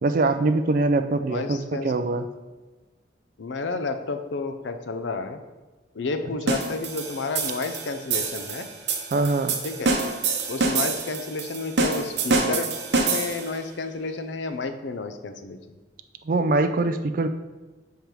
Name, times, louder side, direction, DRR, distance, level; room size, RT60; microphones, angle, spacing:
voice 1, 0.0-2.3 9.1-9.6 16.2-17.3, right 2 dB, 45° right, 9 dB, 0.4 m, -23 dB
voice 2, 1.2-1.9 3.4-5.4 5.9-8.7 9.6-9.9 10.5-12.7 13.0-15.8, left 3 dB, 75° left, 8 dB, 0.5 m, -31 dB
sound 1, 6.5-13.6, right 3 dB, 65° right, 0.8 m, -26 dB
5.2 x 4.6 x 4.6 m, 1.2 s
head